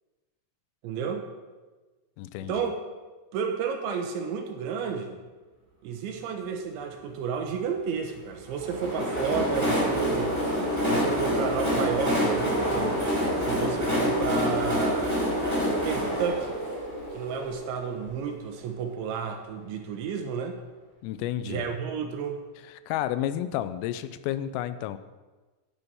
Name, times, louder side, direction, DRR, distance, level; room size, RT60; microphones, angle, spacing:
voice 1, 0.8-1.2 2.5-2.8 3.3-5.2 5.8-10.3 10.8-13.0 13.4-15.1 15.8-16.5 17.1-20.6 21.4-22.4, right 6 dB, 75° right, 5 dB, 3.1 m, -31 dB
voice 2, 2.2-2.7 21.0-21.7 22.7-25.0, left 12 dB, 90° left, 13 dB, 3.3 m, -31 dB
Train, 8.5-18.2, equal, 5° right, 4.1 m, -27 dB
10.5 x 10.5 x 5.5 m, 1.3 s
omnidirectional pair, 5.8 m